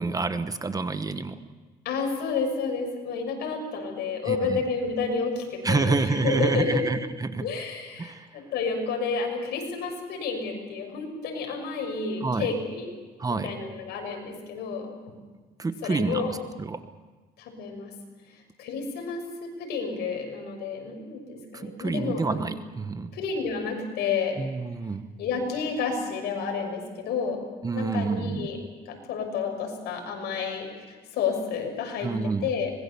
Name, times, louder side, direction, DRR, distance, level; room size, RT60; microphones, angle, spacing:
voice 1, 0.0-1.4 4.3-4.6 5.6-7.5 8.0-8.3 12.2-12.5 13.2-13.5 15.6-16.8 21.5-23.1 24.4-25.0 27.6-28.5 32.0-32.5, right 3 dB, 20° right, 10 dB, 1.2 m, -28 dB
voice 2, 1.8-6.8 7.4-12.9 13.3-15.1 15.8-16.3 17.4-17.9 18.6-22.4 23.1-24.4 25.2-27.4 27.7-28.6 28.9-32.1 32.4-32.7, left 5 dB, 75° left, 3 dB, 6.1 m, -30 dB
25.0 x 21.0 x 7.0 m, 1.3 s
cardioid pair, 110°, 17 cm